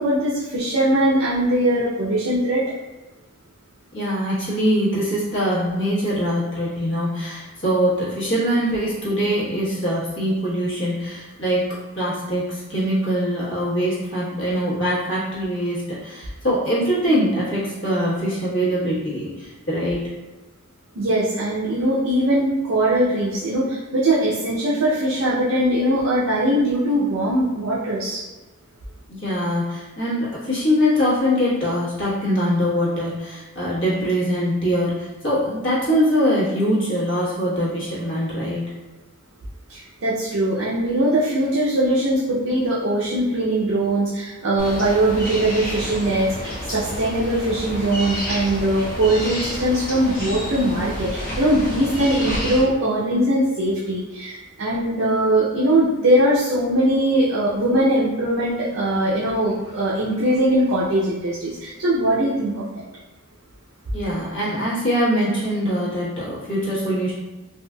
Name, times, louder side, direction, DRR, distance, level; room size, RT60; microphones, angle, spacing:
voice 1, 0.0-2.6 20.9-28.2 39.7-62.9, right 1 dB, 65° right, -7 dB, 0.5 m, -21 dB
voice 2, 3.9-11.7 12.0-20.0 29.1-38.6 63.9-67.1, equal, 55° left, -8 dB, 1.2 m, -23 dB
sound 1, 44.6-52.6, equal, 40° left, 0.9 m, -30 dB
3.6 x 2.5 x 2.2 m, 1.2 s
head